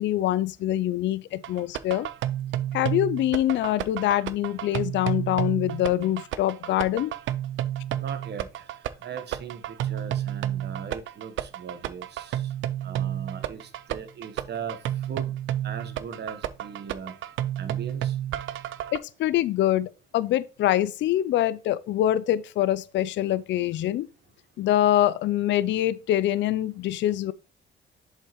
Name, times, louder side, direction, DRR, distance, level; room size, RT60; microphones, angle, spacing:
voice 1, 0.0-2.1 2.7-7.1 18.9-24.1 24.6-27.3, left 13 dB, 65° left, 0.4 m, -24 dB
sound 1, 1.4-19.0, right 12 dB, 75° right, 0.5 m, -31 dB
voice 2, 8.0-12.5 12.8-15.4 15.6-17.2 17.6-18.2, right 6 dB, 60° right, 1.2 m, -39 dB
7.2 x 5.4 x 3.0 m
cardioid pair, 90°, 20 cm